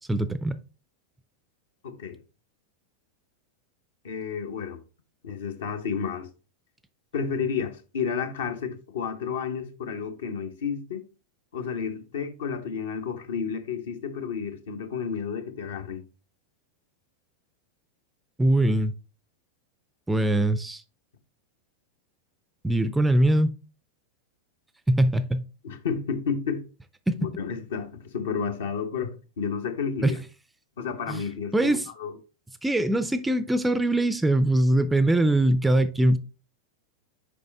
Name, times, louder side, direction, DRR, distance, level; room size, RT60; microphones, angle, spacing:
voice 1, 0.1-0.6 18.4-18.9 20.1-20.8 22.6-23.5 24.9-25.4 27.1-27.3 30.0-30.2 31.1-31.2 31.5-31.9 32.6-36.2, right 1 dB, 5° right, 0.4 m, -22 dB
voice 2, 1.8-2.2 4.0-4.8 5.2-6.3 7.1-11.0 11.5-16.0 25.6-26.6 27.2-30.2 30.8-32.2, left 6 dB, 60° left, 0.9 m, -31 dB
6.5 x 5.1 x 3.4 m
figure-of-eight pair, 90°, 0 cm